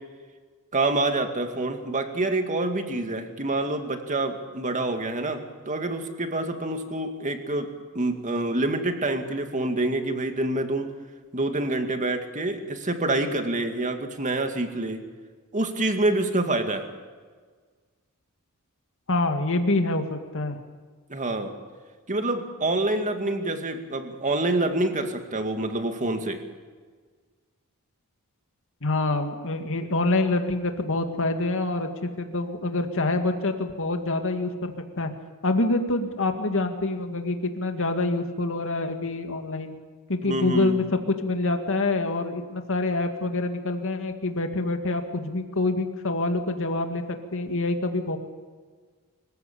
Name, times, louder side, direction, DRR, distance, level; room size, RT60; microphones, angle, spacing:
voice 1, 0.7-7.7 7.9-10.9 11.3-15.0 15.5-16.9 21.1-21.5 22.1-26.4 40.2-40.8, right 2 dB, 35° right, 6 dB, 2.2 m, -27 dB
voice 2, 19.1-20.6 28.8-35.1 35.4-39.7 40.1-48.2, left 2 dB, 60° left, 6 dB, 2.2 m, -26 dB
25.5 x 15.0 x 8.5 m, 1.5 s
head